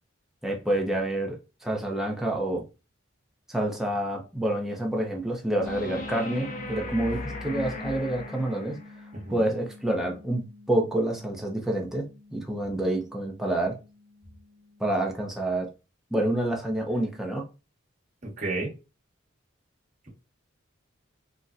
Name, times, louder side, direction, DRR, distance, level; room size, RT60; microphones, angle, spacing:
voice 1, 0.4-1.4 1.6-2.6 3.5-8.8 9.3-13.8 14.8-15.7 16.1-17.4, right 1 dB, ahead, 0.6 m, -28 dB
sound 1, 5.6-9.0 11.6-11.7, left 1 dB, 40° left, 0.5 m, -37 dB
sound 2, 5.6-15.3, left 2 dB, 90° right, 0.5 m, -47 dB
voice 2, 9.1-9.5 18.2-18.7, right 2 dB, 40° right, 1.3 m, -32 dB
4.0 x 2.1 x 2.5 m
head